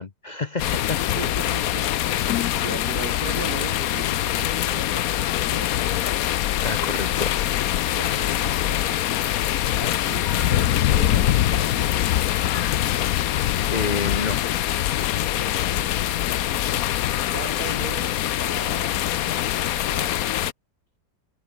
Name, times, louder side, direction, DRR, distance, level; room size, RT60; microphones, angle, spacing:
voice 1, 0.0-1.0 6.6-7.3 13.7-14.4, left 4 dB, 40° left, 0.6 m, -28 dB
sound 1, 0.6-20.5, left 12 dB, 65° left, 0.9 m, -23 dB
voice 2, 1.0-6.2 7.9-9.2 9.8-12.2 15.3-16.5 17.2-20.4, right 7 dB, 55° right, 2.1 m, -39 dB
omnidirectional pair, 2.0 m